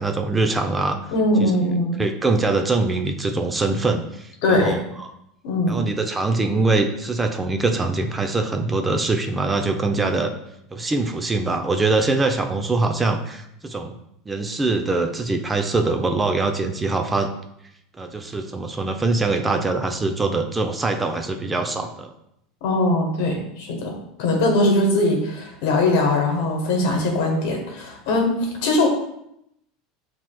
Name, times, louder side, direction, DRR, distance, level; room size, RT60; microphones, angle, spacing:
voice 1, 0.0-1.0 1.4-1.5 2.0-5.1 5.7-10.3 10.7-13.9 14.3-17.3 18.0-22.1, right 3 dB, 15° right, 5 dB, 0.5 m, -23 dB
voice 2, 1.1-2.0 4.4-4.8 5.4-5.8 22.6-23.9 24.2-28.9, left 2 dB, 70° left, 1 dB, 1.2 m, -21 dB
7.2 x 2.9 x 2.3 m, 0.78 s
hypercardioid pair, 90°, 0 cm